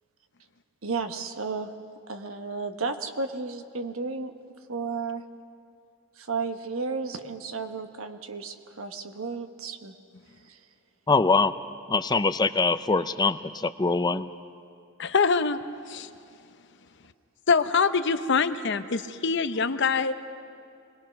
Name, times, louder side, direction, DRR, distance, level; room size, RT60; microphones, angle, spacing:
voice 1, 0.8-1.7 2.1-4.3 4.7-5.2 6.2-9.9 10.4-10.6, right 4 dB, 85° right, 7 dB, 1.2 m, -33 dB
voice 2, 11.1-11.5 11.9-14.3, left 4 dB, 20° left, 13 dB, 0.4 m, -23 dB
voice 3, 15.0-16.1 17.5-20.1, left 5 dB, 60° left, 11 dB, 0.7 m, -24 dB
25.5 x 20.0 x 5.9 m, 2.5 s
head